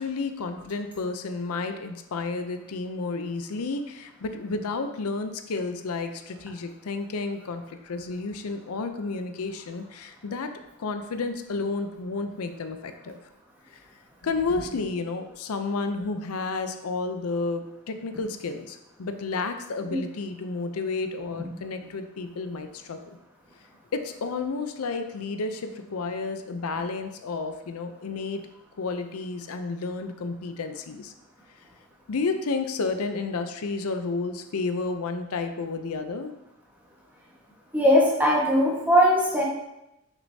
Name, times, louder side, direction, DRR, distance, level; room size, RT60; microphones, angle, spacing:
voice 1, 0.0-10.5 10.8-13.2 13.7-13.8 14.2-23.0 23.9-28.4 28.8-31.1 32.1-36.3, left 3 dB, 80° left, 8 dB, 0.5 m, -31 dB
voice 2, 37.7-39.4, equal, 10° right, -4 dB, 1.3 m, -20 dB
6.5 x 6.1 x 2.7 m, 0.89 s
head